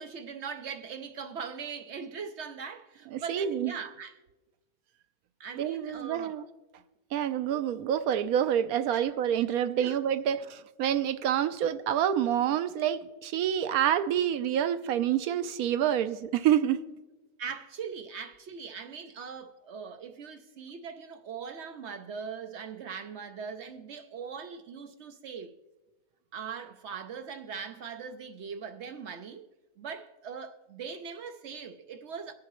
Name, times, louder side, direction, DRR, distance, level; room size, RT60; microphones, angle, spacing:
voice 1, 0.0-4.2 5.4-6.4 8.9-9.0 9.8-10.0 17.4-25.5 26.3-29.5 29.8-32.3, right 6 dB, 60° right, 0.8 m, -40 dB
voice 2, 3.1-3.7 5.6-6.4 7.1-16.8, right 10 dB, 80° right, 1.1 m, -27 dB
22.0 x 7.3 x 3.1 m
omnidirectional pair, 1.6 m